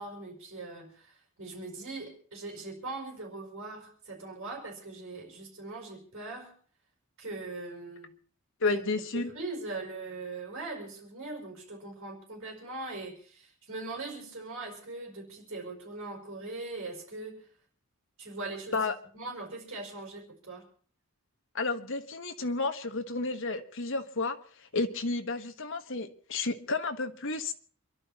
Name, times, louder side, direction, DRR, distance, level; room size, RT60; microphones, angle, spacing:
voice 1, 0.0-6.5 7.2-8.1 8.7-8.8 9.1-17.5 18.2-20.7, right 2 dB, 60° right, 0 dB, 5.4 m, -41 dB
voice 2, 8.6-9.3 18.7-18.9 21.5-24.4 24.7-27.5, left 3 dB, 60° left, 7 dB, 1.5 m, -31 dB
27.0 x 11.5 x 4.3 m, 0.43 s
head